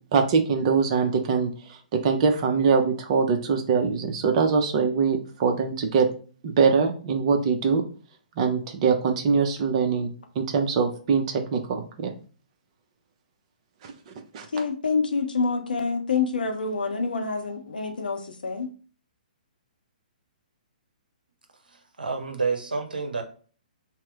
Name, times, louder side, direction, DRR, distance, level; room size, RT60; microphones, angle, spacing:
voice 1, 0.1-6.1 6.4-7.8 8.4-12.1 13.8-14.5, right 5 dB, 40° right, 4 dB, 0.6 m, -23 dB
voice 2, 14.5-18.7, left 4 dB, 75° left, 4 dB, 0.7 m, -27 dB
voice 3, 21.7-23.2, right 4 dB, 80° right, 4 dB, 0.7 m, -29 dB
2.8 x 2.0 x 3.5 m, 0.40 s
figure-of-eight pair, 130°, 5 cm